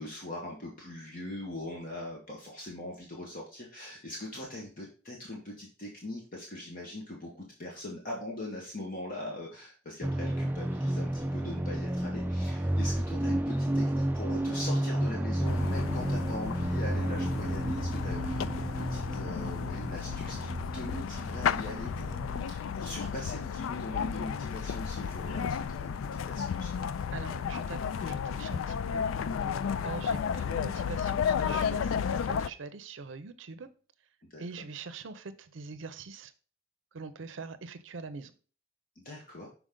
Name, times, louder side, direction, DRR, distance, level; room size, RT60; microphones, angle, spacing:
voice 1, 0.0-26.9 29.5-29.9 34.3-34.4 38.9-39.5, left 1 dB, 45° left, -2 dB, 1.4 m, -41 dB
sound 1, 10.0-22.4, right 1 dB, 10° right, 0.4 m, -31 dB
sound 2, 15.4-32.5, left 7 dB, 80° left, 0.4 m, -33 dB
voice 2, 27.1-29.1 29.8-33.7 34.4-36.3 36.9-38.3, right 4 dB, 65° right, 12 dB, 0.6 m, -43 dB
6.3 x 4.8 x 3.7 m, 0.38 s
head